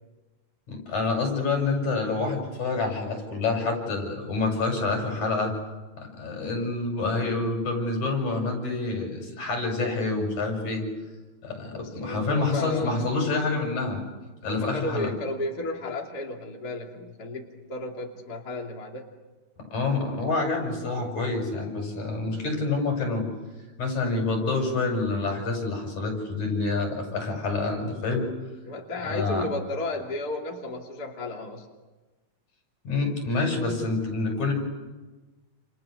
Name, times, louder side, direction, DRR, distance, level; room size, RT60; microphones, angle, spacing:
voice 1, 0.7-5.5 6.0-10.8 11.4-14.0 14.4-15.1 19.7-23.3 23.8-28.3 29.0-29.5 32.8-34.5, left 3 dB, 70° left, 2 dB, 8.6 m, -27 dB
voice 2, 11.7-13.2 14.4-19.0 28.6-31.7, left 2 dB, 30° left, 0 dB, 3.1 m, -33 dB
30.0 x 30.0 x 6.7 m, 1.2 s
omnidirectional pair, 3.4 m